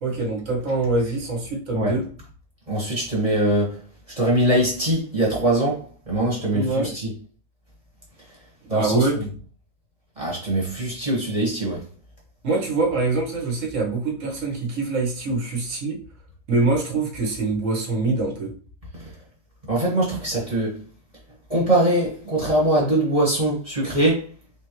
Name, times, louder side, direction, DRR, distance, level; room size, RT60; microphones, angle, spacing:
voice 1, 0.0-2.0 6.5-6.9 8.7-9.2 12.4-16.0 16.5-18.5, right 3 dB, 50° right, 1.2 m, -24 dB
voice 2, 2.7-3.8 4.2-7.1 8.7-9.2 10.2-11.8 19.7-20.8 21.5-24.2, right 1 dB, 20° right, 1.2 m, -22 dB
3.7 x 3.3 x 3.0 m
omnidirectional pair, 2.1 m